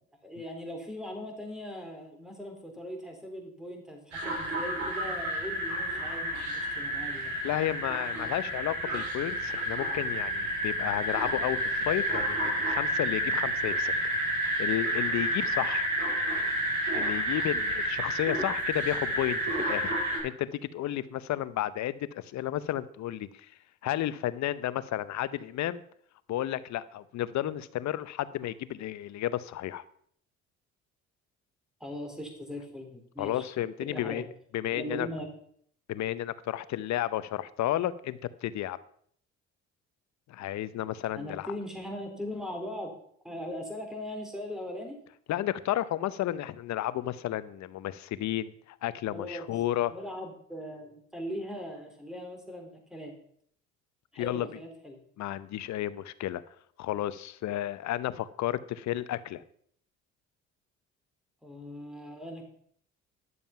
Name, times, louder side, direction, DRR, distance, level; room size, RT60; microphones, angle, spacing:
voice 1, 0.2-7.3 31.8-33.5 33.9-34.2 34.7-35.3 41.2-42.9 43.2-45.0 49.1-49.5 49.9-53.1 54.1-55.0 61.4-62.5, equal, ahead, 2 dB, 3.6 m, -40 dB
sound 1, 4.1-20.2, right 1 dB, 70° right, 5.9 m, -30 dB
voice 2, 7.4-13.9 14.6-15.9 16.9-20.0 20.2-23.5 23.8-25.8 26.3-29.8 33.2-34.2 34.5-35.1 35.9-38.8 40.3-41.5 45.3-49.9 54.2-54.5 55.2-56.4 56.8-59.4, left 13 dB, 65° left, 16 dB, 0.8 m, -32 dB
11.0 x 7.3 x 5.8 m, 0.62 s
supercardioid pair, 70°, 30 cm